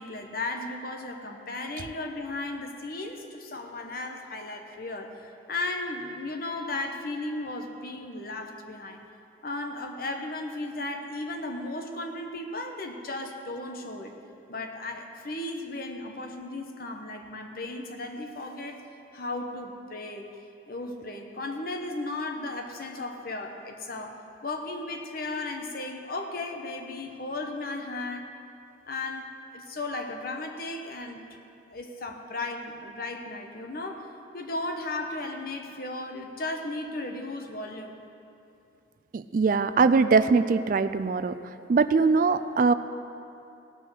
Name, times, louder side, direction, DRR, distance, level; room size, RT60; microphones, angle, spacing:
voice 1, 0.0-9.0 9.4-14.1 14.5-18.8 19.1-20.3 20.7-28.3 28.9-31.4 31.7-34.1 34.3-38.0, left 2 dB, 50° left, 4 dB, 1.1 m, -35 dB
voice 2, 39.1-41.4 41.7-42.7, right 4 dB, 45° right, 12 dB, 0.3 m, -22 dB
17.5 x 6.3 x 6.4 m, 2.7 s
head